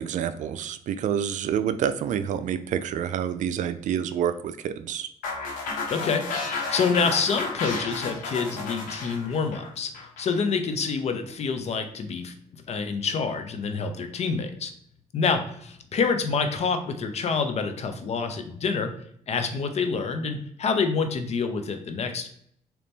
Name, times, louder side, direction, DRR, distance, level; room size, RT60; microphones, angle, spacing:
voice 1, 0.0-5.1, right 9 dB, 65° right, 12 dB, 0.4 m, -28 dB
sound 1, 5.2-10.4, left 3 dB, 85° left, 1.0 m, -32 dB
voice 2, 5.9-12.3 12.7-14.7 15.1-18.9 19.3-22.3, left 5 dB, 55° left, 7 dB, 0.7 m, -27 dB
3.9 x 2.9 x 3.5 m, 0.66 s
cardioid pair, 85°, 14 cm